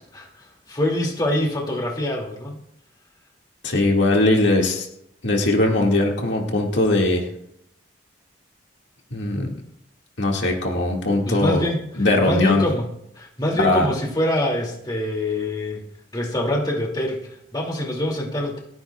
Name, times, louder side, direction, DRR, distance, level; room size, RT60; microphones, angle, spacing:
voice 1, 0.1-2.6 11.2-11.8 12.2-12.9 13.1-15.8 16.1-18.6, left 1 dB, 20° left, -1 dB, 2.6 m, -25 dB
voice 2, 3.6-4.9 5.2-7.3 9.1-9.5 10.2-11.6 12.0-12.6 13.6-13.9, left 2 dB, 70° left, -1 dB, 2.1 m, -20 dB
29.5 x 10.0 x 2.4 m, 0.76 s
head